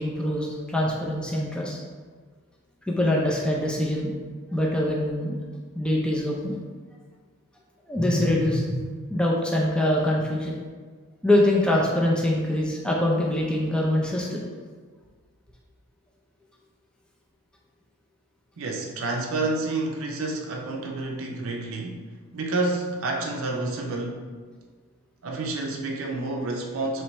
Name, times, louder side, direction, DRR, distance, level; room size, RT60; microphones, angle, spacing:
voice 1, 0.0-1.8 2.9-4.1 4.5-5.4 5.7-6.6 7.9-8.8 9.1-10.5 11.2-14.4, left 1 dB, 5° left, -3 dB, 0.4 m, -24 dB
voice 2, 18.6-22.0 22.3-24.2 25.2-27.0, right 2 dB, 70° right, 1 dB, 0.5 m, -29 dB
4.5 x 3.1 x 3.0 m, 1.5 s
head